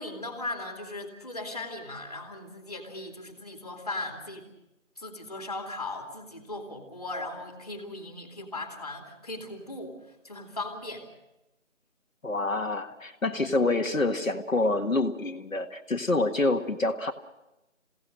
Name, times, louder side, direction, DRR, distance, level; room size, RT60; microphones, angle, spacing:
voice 1, 0.0-4.5 5.0-9.9 10.2-11.0, left 2 dB, 30° left, 3 dB, 2.7 m, -38 dB
voice 2, 12.2-17.1, left 2 dB, 80° left, 4 dB, 1.9 m, -27 dB
27.5 x 17.5 x 6.3 m, 0.95 s
figure-of-eight pair, 175°, 40 cm